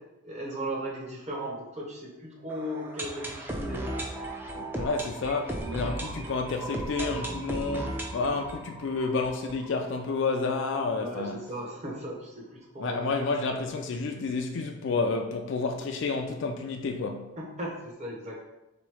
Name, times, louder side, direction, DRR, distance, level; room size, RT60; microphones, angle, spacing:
voice 1, 0.2-3.8 11.0-13.1 13.5-13.6 17.4-18.5, right 1 dB, 30° right, 0.9 m, -37 dB
sound 1, 2.5-10.3 10.5-10.6 10.8-10.9 11.4-11.5, right 1 dB, 10° right, 0.4 m, -36 dB
voice 2, 4.5-11.5 12.8-17.3, left 3 dB, 55° left, 0.3 m, -30 dB
3.7 x 3.0 x 4.8 m
head